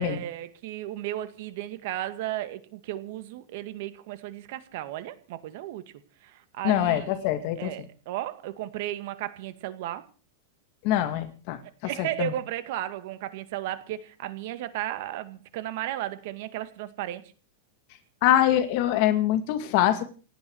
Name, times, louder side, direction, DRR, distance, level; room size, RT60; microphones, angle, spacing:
voice 1, 0.0-5.8 6.2-7.3 7.6-10.1 11.8-17.2, right 13 dB, 55° right, 11 dB, 2.1 m, -34 dB
voice 2, 6.6-7.7 10.8-11.6 12.0-12.3 18.2-20.0, left 12 dB, 50° left, 9 dB, 2.1 m, -24 dB
28.5 x 9.5 x 4.8 m, 0.38 s
supercardioid pair, 150°, 0 cm